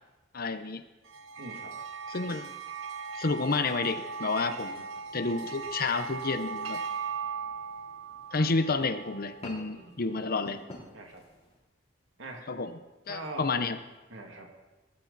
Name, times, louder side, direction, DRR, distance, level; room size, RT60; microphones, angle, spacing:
voice 1, 0.3-0.8 2.1-2.5 3.2-4.8 5.1-6.8 8.3-10.6 12.5-12.8 13.1-13.8, left 3 dB, 50° left, 10 dB, 0.8 m, -30 dB
sound 1, 1.1-9.7, right 5 dB, 90° right, 1.1 m, -38 dB
voice 2, 1.4-1.7 4.5-4.8 9.7-10.2 10.9-11.2 12.2-12.5 13.1-13.5 14.1-14.5, right 2 dB, 70° right, 2 dB, 2.5 m, -43 dB
sound 2, 4.9-11.6, left 1 dB, 30° left, 3.4 m, -51 dB
20.0 x 13.0 x 4.1 m, 1.2 s
head